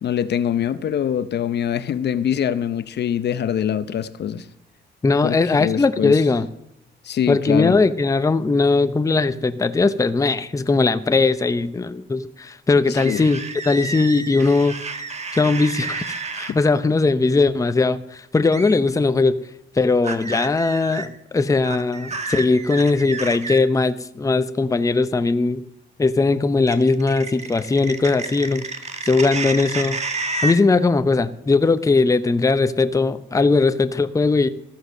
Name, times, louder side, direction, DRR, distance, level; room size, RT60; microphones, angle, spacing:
voice 1, 0.0-4.5 5.2-6.2 7.0-7.7 12.9-13.2 16.5-16.6, left 9 dB, 60° left, 0.8 m, -24 dB
voice 2, 5.0-6.5 7.3-14.8 15.3-19.4 19.7-25.6 26.0-28.7 29.0-30.0 30.4-34.5, left 3 dB, 15° left, 0.7 m, -19 dB
sound 1, 13.0-16.5 18.5-18.8 20.0-21.1 21.6-23.6 26.7-30.6, right 3 dB, 35° right, 1.7 m, -30 dB
14.5 x 7.8 x 6.6 m
cardioid pair, 90°, 20 cm